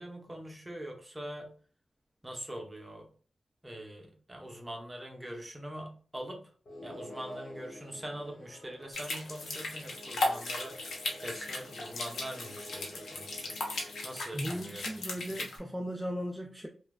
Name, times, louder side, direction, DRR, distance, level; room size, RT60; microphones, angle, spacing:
voice 1, 0.0-1.5 2.2-3.1 3.6-6.4 6.8-10.8 11.2-13.6 14.0-15.0, equal, 20° right, 1 dB, 0.8 m, -43 dB
sound 1, 6.7-14.2, left 1 dB, 60° left, 1.2 m, -49 dB
sound 2, 8.9-15.6, left 2 dB, 90° left, 0.7 m, -37 dB
voice 2, 14.3-16.7, equal, 5° right, 1 dB, 0.4 m, -37 dB
3.1 x 2.3 x 2.3 m, 0.41 s
cardioid pair, 70°, 0 cm